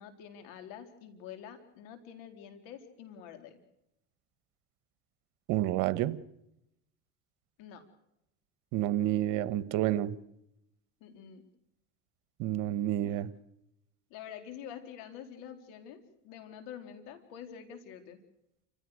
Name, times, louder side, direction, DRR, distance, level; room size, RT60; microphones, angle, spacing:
voice 1, 0.0-3.6 7.6-7.8 11.0-11.4 13.0-13.2 14.1-18.2, left 8 dB, 70° left, 4.3 m, -47 dB
voice 2, 5.5-6.2 8.7-10.1 12.4-13.3, right 13 dB, 65° right, 1.4 m, -29 dB
29.0 x 16.5 x 6.6 m
supercardioid pair, 100°, 33 cm